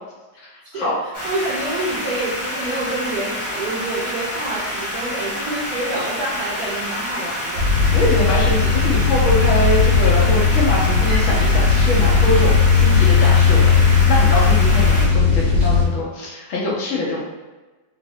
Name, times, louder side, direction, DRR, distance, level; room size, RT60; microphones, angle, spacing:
voice 1, 0.4-0.9 7.9-17.2, left 1 dB, 80° left, -5 dB, 0.6 m, -23 dB
sound 1, 1.1-15.1, equal, 35° left, 0.5 m, -28 dB
voice 2, 1.2-7.7, right 2 dB, 70° right, -6 dB, 0.9 m, -27 dB
sound 2, 7.5-15.8, left 5 dB, 50° right, 1.1 m, -16 dB
3.1 x 2.0 x 2.7 m, 1.2 s
omnidirectional pair, 2.0 m